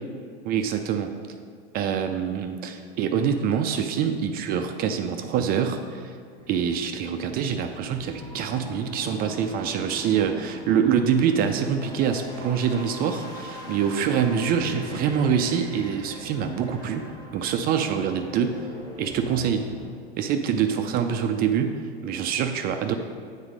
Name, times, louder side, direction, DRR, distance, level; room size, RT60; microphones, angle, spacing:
voice 1, 0.4-1.1 1.7-6.1 6.5-17.0 17.3-18.6 19.0-19.7 20.2-23.0, right 7 dB, 30° right, 6 dB, 0.4 m, -25 dB
sound 1, 6.4-19.9, left 1 dB, 10° left, 1.1 m, -41 dB
7.1 x 4.0 x 5.0 m, 2.2 s
hypercardioid pair, 95°, 31 cm